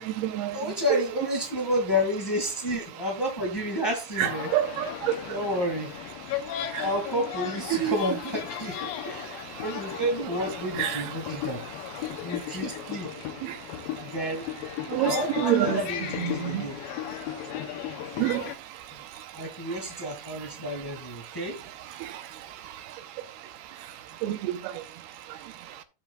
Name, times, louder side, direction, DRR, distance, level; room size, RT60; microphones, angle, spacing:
voice 1, 0.0-0.5 0.9-1.0 4.2-5.1 7.7-8.0 10.8-11.0 14.9-15.8 16.2-16.6 18.2-18.4 24.2-24.4, right 13 dB, 80° right, 2.7 m, -26 dB
voice 2, 0.5-4.5 5.3-5.9 6.8-11.6 12.2-13.1 14.0-14.5 15.0-16.8 18.9-19.0 19.3-21.6, equal, 15° left, 0.7 m, -30 dB
sound 1, 4.2-18.5, left 11 dB, 75° left, 2.3 m, -36 dB
17.0 x 6.2 x 2.4 m
omnidirectional pair, 4.6 m